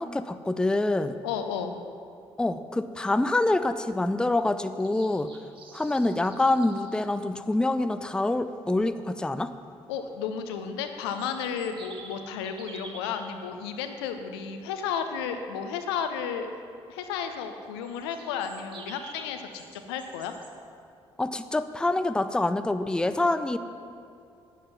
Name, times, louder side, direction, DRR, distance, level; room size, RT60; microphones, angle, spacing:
voice 1, 0.0-1.2 2.4-5.3 5.7-9.5 21.2-23.6, left 2 dB, 5° left, 11 dB, 0.5 m, -26 dB
voice 2, 1.2-1.8 9.9-16.5 16.9-20.3, left 7 dB, 70° left, 7 dB, 0.8 m, -33 dB
sound 1, 4.8-7.0 10.8-13.2 17.8-20.5, right 3 dB, 35° right, 2.0 m, -48 dB
11.5 x 9.3 x 5.8 m, 2.5 s
figure-of-eight pair, 45°, 14 cm